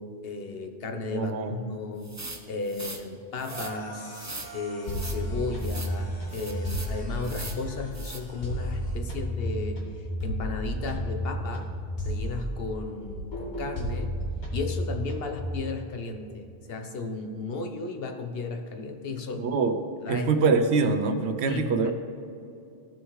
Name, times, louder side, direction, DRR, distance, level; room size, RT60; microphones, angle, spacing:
voice 1, 0.0-2.1 2.5-11.7 12.0-14.1 14.5-19.4 20.0-20.3 21.5-21.9, left 3 dB, 65° left, 5 dB, 1.1 m, -35 dB
voice 2, 1.1-1.6 19.3-19.8 20.1-21.9, right 4 dB, 90° right, 8 dB, 1.0 m, -24 dB
sound 1, 2.0-3.0 3.4-3.7 4.1-4.5 4.9-5.2 5.6-5.9 6.3-6.9 7.2-7.6 7.9-8.2, right 2 dB, 20° right, 0.5 m, -40 dB
sound 2, 3.4-9.0, right 2 dB, 20° left, 1.2 m, -46 dB
sound 3, 4.9-8.0 8.4-12.8 13.1-15.5, equal, 45° left, 1.6 m, -32 dB
15.0 x 6.2 x 3.2 m, 2.6 s
omnidirectional pair, 1.1 m